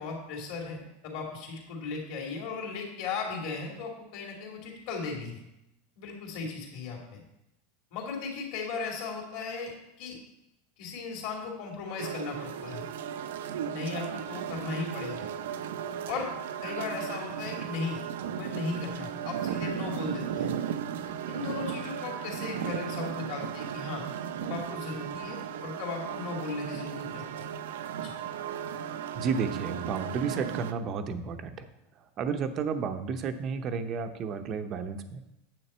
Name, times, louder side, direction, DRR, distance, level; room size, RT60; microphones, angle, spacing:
voice 1, 0.0-5.4 6.0-7.2 7.9-10.2 10.8-12.8 13.6-15.3 16.1-16.3 16.6-18.0 18.3-20.6 21.3-24.0 24.4-27.2 28.0-28.1, left 4 dB, 50° left, 0 dB, 2.5 m, -36 dB
sound 1, 12.0-30.7, right 9 dB, 85° right, 0.6 m, -36 dB
voice 2, 29.1-31.7 32.2-35.2, right 5 dB, 25° right, 8 dB, 0.6 m, -32 dB
9.6 x 7.6 x 4.3 m, 0.88 s
supercardioid pair, 170°, 0 cm